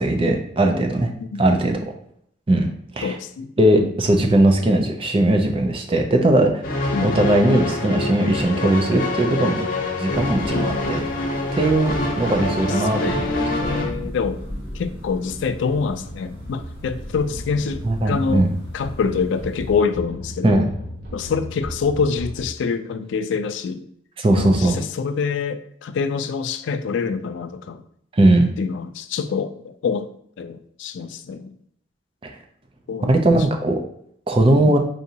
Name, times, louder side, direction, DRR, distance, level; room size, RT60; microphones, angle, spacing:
voice 1, 0.0-1.1 1.4-1.8 2.5-2.7 2.9-3.2 3.6-6.6 7.0-9.6 10.0-11.0 11.5-13.3 13.6-13.8 17.8-18.5 20.4-20.7 24.2-24.8 28.1-28.5 32.2-32.3 33.0-33.8 34.3-34.8, right 1 dB, 30° right, 4 dB, 0.4 m, -19 dB
voice 2, 3.0-3.9 6.9-7.2 10.5-10.9 13.0-14.4 14.7-18.5 18.7-20.6 21.1-23.8 24.4-27.8 28.6-30.1 30.4-31.5 32.9-33.2 34.6-34.8, left 5 dB, 75° left, 10 dB, 0.3 m, -26 dB
sound 1, 6.6-13.9, left 2 dB, 45° left, 0.9 m, -25 dB
sound 2, 10.1-19.8, equal, 10° right, 1.3 m, -37 dB
sound 3, 15.3-22.4, left 1 dB, 50° right, 1.0 m, -37 dB
4.8 x 2.6 x 2.8 m, 0.68 s
head